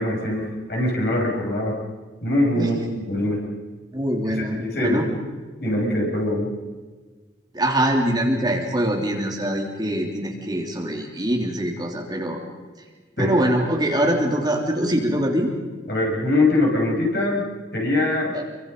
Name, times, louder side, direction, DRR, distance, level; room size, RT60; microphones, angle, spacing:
voice 1, 0.0-1.7 2.2-3.4 4.2-5.0 5.6-6.5 13.2-13.3 15.9-18.3, left 1 dB, 55° left, -2 dB, 6.9 m, -23 dB
voice 2, 3.9-5.1 7.5-12.4 13.2-15.5, right 1 dB, 20° right, 0 dB, 3.2 m, -23 dB
28.0 x 24.0 x 5.5 m, 1.3 s
head